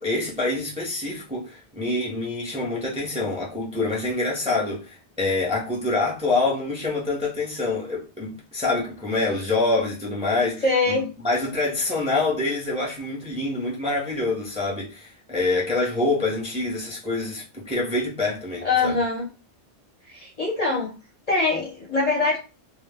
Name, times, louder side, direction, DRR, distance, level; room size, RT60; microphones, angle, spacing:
voice 1, 0.0-19.0, left 2 dB, 10° right, 0.5 m, -26 dB
voice 2, 10.6-11.1 18.6-19.3 20.1-21.0 21.3-22.4, left 3 dB, 45° left, 0.6 m, -23 dB
2.1 x 2.0 x 3.3 m
omnidirectional pair, 1.2 m